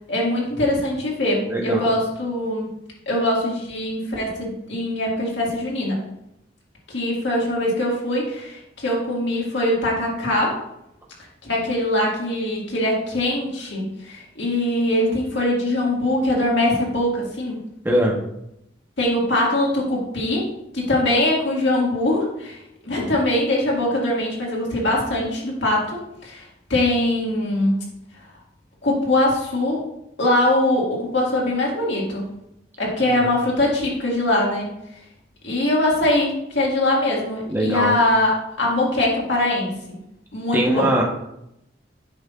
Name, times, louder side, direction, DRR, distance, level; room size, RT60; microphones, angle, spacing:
voice 1, 0.1-2.7 3.1-6.0 6.9-10.6 11.4-17.6 19.0-20.5 20.7-22.6 22.8-27.8 28.8-29.8 30.2-32.3 32.8-34.7 35.4-40.0 40.3-40.9, left 1 dB, 90° left, -3 dB, 2.1 m, -22 dB
voice 2, 1.5-1.9 17.8-18.2 33.0-33.3 37.5-38.0 40.5-41.0, right 1 dB, 10° right, -2 dB, 1.2 m, -21 dB
8.4 x 5.8 x 2.5 m, 0.82 s
head